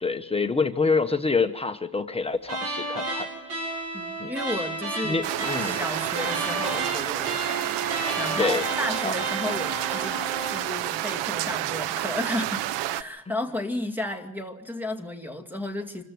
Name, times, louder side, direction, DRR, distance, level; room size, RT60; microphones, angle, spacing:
voice 1, 0.0-3.3 4.2-4.3 5.0-5.8 8.4-8.6 9.0-9.1, left 4 dB, 15° left, 7 dB, 1.1 m, -26 dB
sound 1, 2.4-10.7, right 2 dB, 35° right, 7.8 m, -32 dB
voice 2, 3.9-5.3 5.6-7.8 8.2-10.2 10.5-16.0, left 1 dB, 5° right, 5 dB, 2.3 m, -33 dB
sound 2, 5.2-13.0, right 14 dB, 70° right, 1.0 m, -29 dB
26.0 x 14.5 x 7.9 m, 0.82 s
cardioid pair, 125°, 45 cm